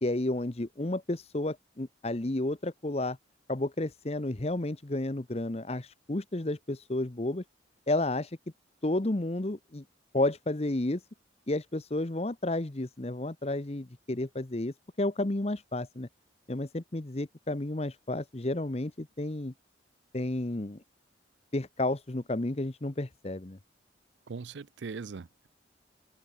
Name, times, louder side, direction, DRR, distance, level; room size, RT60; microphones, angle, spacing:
voice 1, 0.0-3.2 3.5-7.4 7.9-8.4 8.8-9.8 10.1-11.0 11.5-16.1 16.5-19.5 20.1-20.8 21.5-23.6, left 2 dB, 30° left, 0.9 m, -31 dB
voice 2, 24.3-25.5, right 4 dB, 70° right, 0.5 m, -40 dB
open air
head